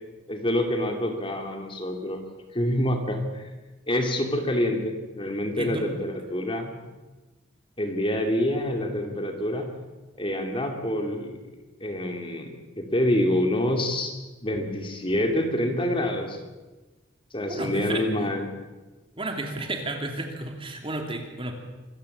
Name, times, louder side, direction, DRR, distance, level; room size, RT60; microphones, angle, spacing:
voice 1, 0.3-2.2 2.5-3.5 3.9-6.7 7.8-9.7 10.2-11.4 11.8-14.1 14.4-16.4 17.3-18.4, left 1 dB, 25° left, 4 dB, 2.6 m, -26 dB
voice 2, 5.6-5.9 17.5-18.0 19.2-21.5, right 2 dB, 25° right, 4 dB, 2.8 m, -32 dB
25.0 x 15.0 x 8.6 m, 1.2 s
head